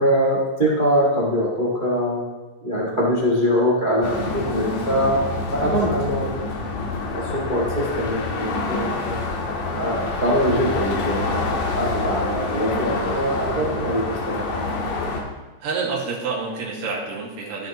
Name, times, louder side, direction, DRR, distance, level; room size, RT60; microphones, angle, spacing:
voice 1, 0.0-2.2 2.6-6.3 7.3-9.2 9.8-11.4 11.8-14.5, equal, 45° right, -4 dB, 0.6 m, -22 dB
sound 1, 4.0-15.2, left 3 dB, 80° left, 2.8 m, -27 dB
voice 2, 15.6-17.7, right 4 dB, 75° right, -3 dB, 3.4 m, -28 dB
14.5 x 6.7 x 2.9 m, 1.2 s
omnidirectional pair, 3.9 m